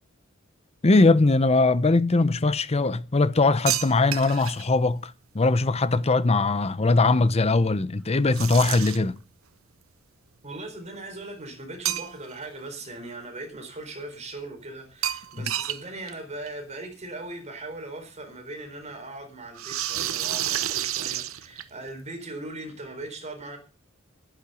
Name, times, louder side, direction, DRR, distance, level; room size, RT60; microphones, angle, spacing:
voice 1, 0.8-9.2 15.4-15.5, left 3 dB, 30° left, 0.7 m, -21 dB
sound 1, 3.7-4.6 8.3-9.2 11.8-12.4 12.8-12.9 15.0-16.1 16.5-16.6 17.7-17.8 19.5-21.9, right 12 dB, 90° right, 0.9 m, -29 dB
voice 2, 10.4-23.6, right 2 dB, 35° right, 4.2 m, -39 dB
11.5 x 10.0 x 6.8 m
head